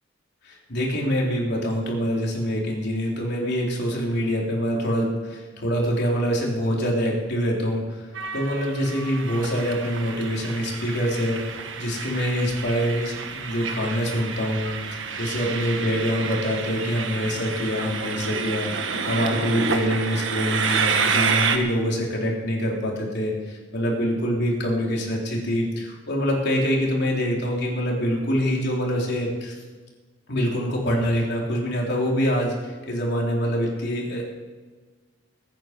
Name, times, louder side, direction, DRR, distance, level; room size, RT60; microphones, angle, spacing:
voice 1, 0.4-8.0 8.3-29.5 30.3-34.2, equal, 60° left, -2 dB, 3.8 m, -25 dB
Train, 8.2-21.6, right 5 dB, 85° right, 1.4 m, -29 dB
22.0 x 9.3 x 5.3 m, 1.4 s
head